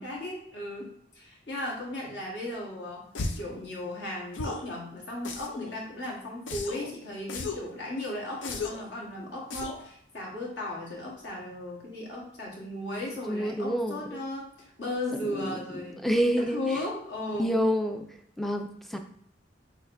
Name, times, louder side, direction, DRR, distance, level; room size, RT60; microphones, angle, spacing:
voice 1, 0.0-3.0 3.4-16.0 16.4-17.5, left 1 dB, 65° left, -3 dB, 1.5 m, -36 dB
sound 1, 3.1-3.5 4.3-4.7 5.2-5.7 6.5-6.9 7.3-7.7 8.4-8.9 9.5-9.9, left 3 dB, 90° left, 0.5 m, -35 dB
voice 2, 13.3-14.2 15.2-15.6 16.0-16.6 17.4-18.1 18.4-19.0, equal, ahead, 5 dB, 0.4 m, -28 dB
6.4 x 2.9 x 2.6 m, 0.70 s
head